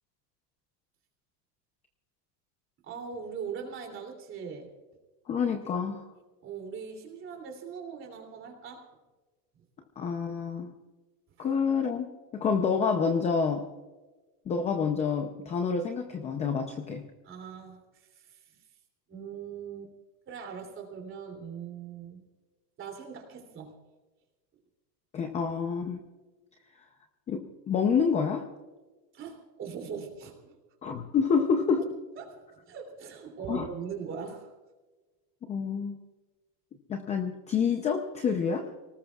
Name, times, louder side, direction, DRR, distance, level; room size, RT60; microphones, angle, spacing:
voice 1, 2.8-4.7 6.4-8.9 11.4-11.5 17.2-18.4 19.1-19.9 20.3-22.2 22.8-23.8 29.1-30.6 31.4-31.5 32.2-34.5, right 6 dB, 25° right, 3 dB, 3.0 m, -41 dB
voice 2, 5.3-6.1 10.0-10.7 11.4-13.7 14.5-17.0 25.1-26.0 27.3-28.5 30.8-31.8 33.5-33.7 35.5-36.0 36.9-38.7, left 6 dB, 15° left, 5 dB, 0.5 m, -28 dB
25.0 x 19.0 x 2.4 m, 1.2 s
supercardioid pair, 165°, 48 cm